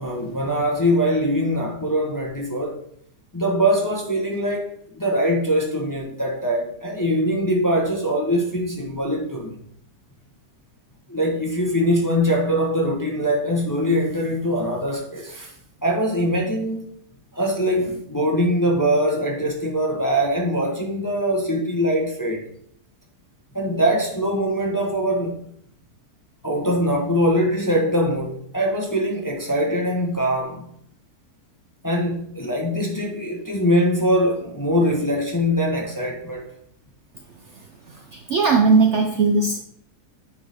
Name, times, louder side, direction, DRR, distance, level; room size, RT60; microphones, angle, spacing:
voice 1, 0.0-2.8 3.3-9.5 11.1-15.5 15.8-16.9 17.3-22.5 23.5-25.4 26.4-30.7 31.8-36.5, equal, 15° left, 0.8 m, -22 dB
voice 2, 38.1-39.6, right 4 dB, 60° right, 0.7 m, -18 dB
9.4 x 4.5 x 3.5 m
omnidirectional pair, 1.7 m